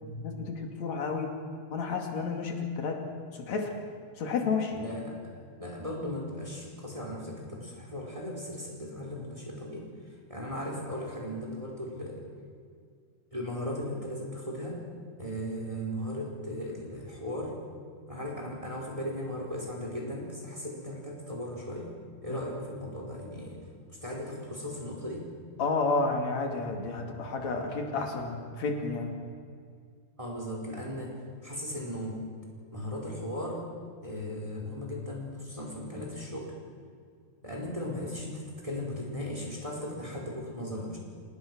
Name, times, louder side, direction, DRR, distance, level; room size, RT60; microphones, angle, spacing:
voice 1, 0.0-1.3 1.7-3.0 3.3-3.7 4.2-4.7 22.3-22.4 25.6-29.1, left 4 dB, 45° left, 3 dB, 3.2 m, -31 dB
voice 2, 4.7-5.3 5.6-9.9 10.3-12.2 13.3-14.8 15.2-17.5 18.1-21.9 22.2-23.6 23.9-25.3 30.2-31.1 31.4-32.2 32.7-33.6 34.0-36.5 37.4-41.0, left 1 dB, 10° right, -1 dB, 4.3 m, -37 dB
28.0 x 18.5 x 6.2 m, 2.2 s
omnidirectional pair, 4.9 m